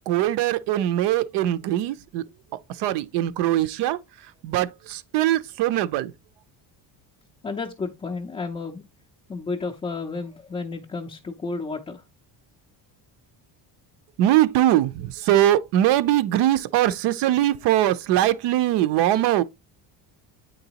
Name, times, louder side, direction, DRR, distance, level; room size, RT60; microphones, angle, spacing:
voice 1, 0.1-2.2 2.8-4.0 4.4-6.1 14.2-19.4, right 13 dB, 70° right, 0.5 m, -21 dB
voice 2, 7.4-8.8 9.3-12.0 16.9-17.0, left 4 dB, 15° left, 0.4 m, -32 dB
8.6 x 3.9 x 2.8 m
cardioid pair, 165°, 44 cm